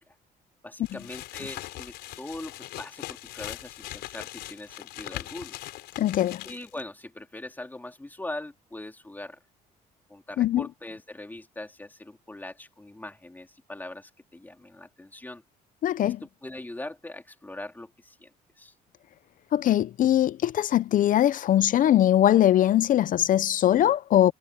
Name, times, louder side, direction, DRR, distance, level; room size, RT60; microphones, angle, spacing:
voice 1, 0.6-5.6 6.4-9.4 10.1-15.4 16.0-16.1 16.4-18.3 18.6-18.7, left 2 dB, 10° left, 2.6 m, -41 dB
sound 1, 0.8-6.8, left 16 dB, 85° left, 5.0 m, -40 dB
voice 2, 6.0-6.5 10.4-10.7 15.8-16.2 19.5-24.3, left 12 dB, 50° left, 0.6 m, -21 dB
cardioid pair, 110°, 17 cm